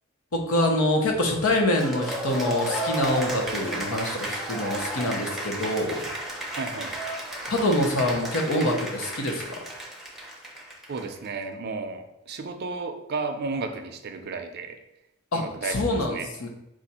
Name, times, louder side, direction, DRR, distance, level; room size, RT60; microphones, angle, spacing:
voice 1, 0.3-6.1 7.5-9.4 15.3-16.5, left 1 dB, 90° left, 1 dB, 0.9 m, -25 dB
Cheering / Applause, 1.7-11.3, right 1 dB, ahead, 0.6 m, -33 dB
voice 2, 6.6-7.0 10.9-14.8 15.3-15.8 16.1-16.3, right 4 dB, 50° right, 6 dB, 0.5 m, -33 dB
4.8 x 2.6 x 4.2 m, 0.90 s
head